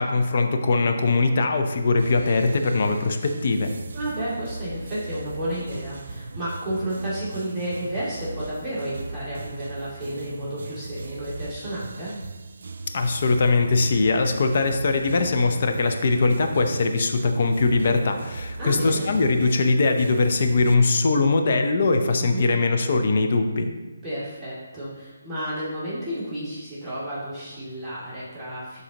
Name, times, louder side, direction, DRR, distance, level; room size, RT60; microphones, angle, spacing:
voice 1, 0.0-3.7 12.9-23.7, left 3 dB, 50° left, 5 dB, 0.7 m, -21 dB
sound 1, 2.0-20.7, right 3 dB, 65° right, 0.4 m, -38 dB
voice 2, 3.9-12.1 18.6-19.1 22.2-22.5 24.0-28.8, right 1 dB, 10° right, -13 dB, 2.3 m, -31 dB
12.0 x 4.1 x 2.9 m, 1.2 s
figure-of-eight pair, 155°, 0 cm